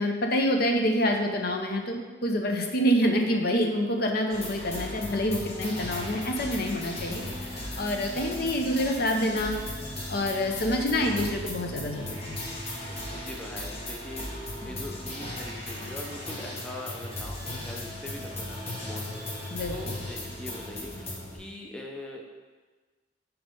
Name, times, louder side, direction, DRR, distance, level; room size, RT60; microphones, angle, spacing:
voice 1, 0.0-7.2 7.7-9.5 10.1-12.4 19.5-20.0, equal, 50° left, 3 dB, 0.7 m, -27 dB
sound 1, 4.3-21.4, left 1 dB, 30° left, 1.1 m, -37 dB
sound 2, 11.0-14.7, right 2 dB, 50° right, 0.6 m, -45 dB
voice 2, 12.7-22.2, left 1 dB, 5° left, -1 dB, 0.5 m, -42 dB
5.3 x 4.6 x 5.2 m, 1.3 s
head